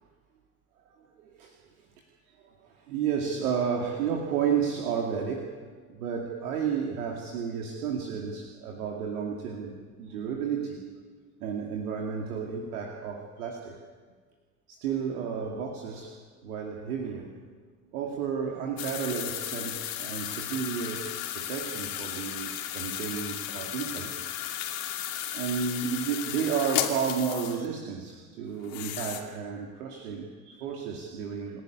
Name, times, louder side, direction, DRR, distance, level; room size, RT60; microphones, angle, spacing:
voice 1, 2.9-5.6 5.9-10.8 11.4-13.8 14.7-16.1 16.4-17.3 17.9-21.1 21.3-24.1 25.3-31.6, right 7 dB, 65° right, 1 dB, 2.6 m, -32 dB
sound 1, 18.8-27.7 28.6-29.2, left 11 dB, 45° left, 2.8 m, -34 dB
28.0 x 12.0 x 9.8 m, 1.5 s
figure-of-eight pair, 75°, 47 cm